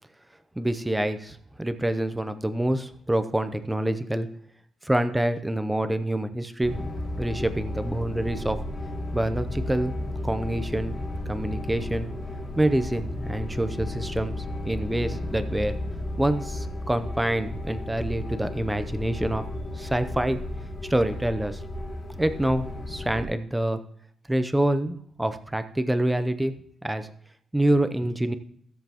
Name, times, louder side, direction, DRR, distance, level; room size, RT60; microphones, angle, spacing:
voice 1, 0.6-4.3 4.9-6.9 7.2-8.6 9.1-11.0 11.3-12.1 12.6-14.4 14.6-15.7 16.2-19.4 19.8-20.4 20.8-21.6 22.2-23.8 24.3-26.5 26.8-27.1 27.5-28.4, right 1 dB, 5° right, 10 dB, 0.6 m, -26 dB
sound 1, 6.6-23.2, left 1 dB, 35° left, 2.7 m, -33 dB
17.0 x 7.4 x 3.0 m, 0.65 s
wide cardioid pair, 150°, 0 cm